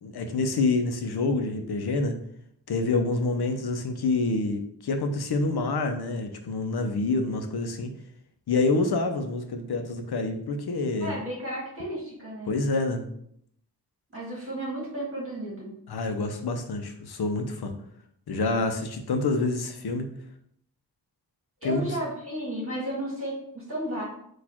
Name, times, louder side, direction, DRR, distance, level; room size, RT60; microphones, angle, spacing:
voice 1, 0.0-2.2 2.7-7.9 8.5-11.2 12.5-13.1 15.9-17.7 18.3-20.1 21.6-22.0, left 3 dB, 75° left, 6 dB, 0.7 m, -27 dB
voice 2, 11.0-12.6 14.1-15.7 21.6-24.0, right 1 dB, 35° right, -5 dB, 1.5 m, -33 dB
4.2 x 2.5 x 4.4 m, 0.70 s
wide cardioid pair, 105°, 39 cm